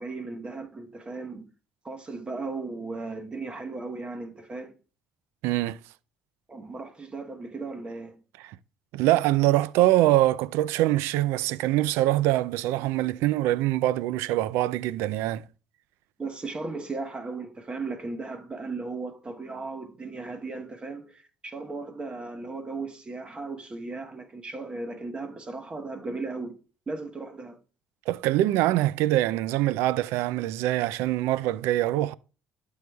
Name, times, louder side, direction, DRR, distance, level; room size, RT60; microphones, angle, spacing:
voice 1, 0.0-1.5 1.8-4.7 6.5-8.2 16.2-26.6 26.9-27.6, right 3 dB, 25° right, 1.0 m, -36 dB
voice 2, 5.4-5.8 8.4-8.6 8.9-15.4 28.1-32.1, right 15 dB, 85° right, 0.4 m, -24 dB
12.0 x 6.3 x 2.3 m
cardioid pair, 90°, 4 cm